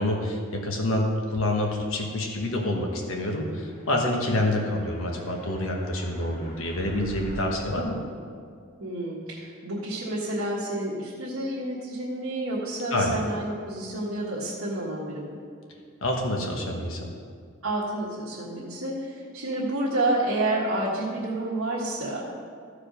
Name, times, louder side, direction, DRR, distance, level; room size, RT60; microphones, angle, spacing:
voice 1, 0.0-8.0 12.9-13.2 16.0-17.0, left 1 dB, 70° left, 1 dB, 1.3 m, -27 dB
sound 1, 3.0-7.5, right 1 dB, 30° left, 2.7 m, -45 dB
voice 2, 8.8-15.3 17.6-22.3, right 1 dB, 70° right, -7 dB, 1.6 m, -29 dB
14.0 x 4.9 x 5.1 m, 2.2 s
head